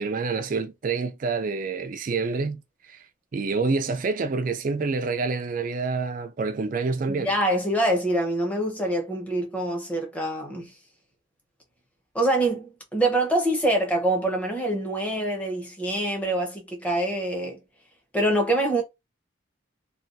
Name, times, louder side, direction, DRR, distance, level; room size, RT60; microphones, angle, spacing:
voice 1, 0.0-3.1 3.3-7.3, right 4 dB, 40° right, 0.4 m, -27 dB
voice 2, 7.2-10.7 12.1-17.6 18.1-18.8, right 1 dB, 5° left, 0.8 m, -25 dB
3.3 x 2.3 x 2.5 m
head